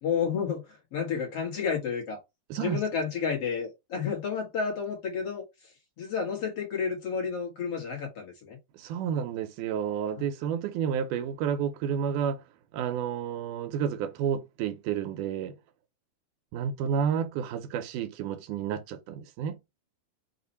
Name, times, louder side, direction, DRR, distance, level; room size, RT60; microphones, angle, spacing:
voice 1, 0.0-2.2 2.6-8.6 10.2-10.3, left 6 dB, 55° left, 2.1 m, -31 dB
voice 2, 2.5-2.8 8.7-12.4 12.7-15.6 16.5-19.6, right 8 dB, 85° right, 2.1 m, -30 dB
5.4 x 2.5 x 4.0 m
omnidirectional pair, 3.7 m